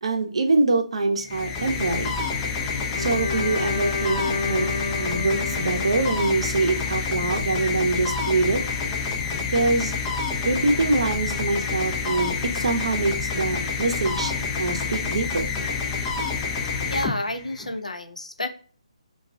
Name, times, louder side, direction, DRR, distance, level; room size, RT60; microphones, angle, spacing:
voice 1, 0.0-2.2 3.0-4.2 4.5-4.7 5.0-8.6 9.5-9.9 10.4-15.5, right 3 dB, 55° right, 4 dB, 0.6 m, -24 dB
sound 1, 1.2-17.7, left 5 dB, 15° left, 0.4 m, -28 dB
Bowed string instrument, 2.9-7.0, left 3 dB, 55° left, 0.9 m, -30 dB
voice 2, 16.9-18.5, left 1 dB, 85° left, 6 dB, 0.5 m, -30 dB
3.7 x 2.3 x 2.2 m, 0.41 s
figure-of-eight pair, 145°, 4 cm